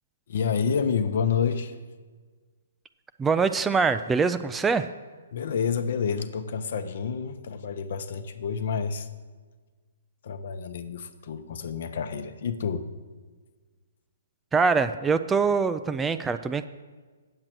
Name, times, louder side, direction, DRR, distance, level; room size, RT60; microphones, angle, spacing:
voice 1, 0.3-1.8 5.3-9.1 10.2-12.9, left 6 dB, 60° left, 10 dB, 0.8 m, -29 dB
voice 2, 3.2-4.9 14.5-16.7, right 5 dB, 10° right, 10 dB, 0.3 m, -24 dB
8.8 x 7.6 x 6.1 m, 1.4 s
hypercardioid pair, 150°, 0 cm